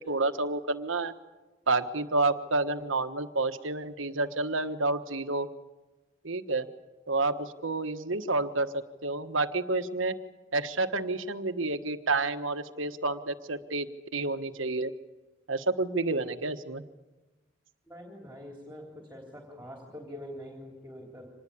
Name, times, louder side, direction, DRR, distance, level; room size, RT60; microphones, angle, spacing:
voice 1, 0.1-1.1 1.7-5.5 6.2-6.7 7.1-8.7 9.0-10.2 10.5-13.9 14.1-14.9 15.5-16.8, right 3 dB, 90° right, 9 dB, 1.4 m, -29 dB
voice 2, 17.9-21.3, equal, 10° right, 1 dB, 3.5 m, -44 dB
26.0 x 20.0 x 8.6 m, 1.2 s
head